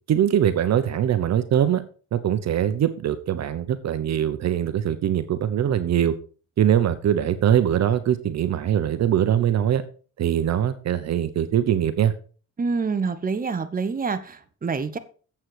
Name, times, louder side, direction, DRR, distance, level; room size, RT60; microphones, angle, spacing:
voice 1, 0.1-1.8 2.1-6.2 6.6-9.8 10.2-12.1, right 10 dB, 60° right, 1.0 m, -22 dB
voice 2, 12.6-15.0, right 4 dB, 30° right, 1.2 m, -27 dB
8.9 x 7.9 x 4.9 m
cardioid pair, 90°, 30 cm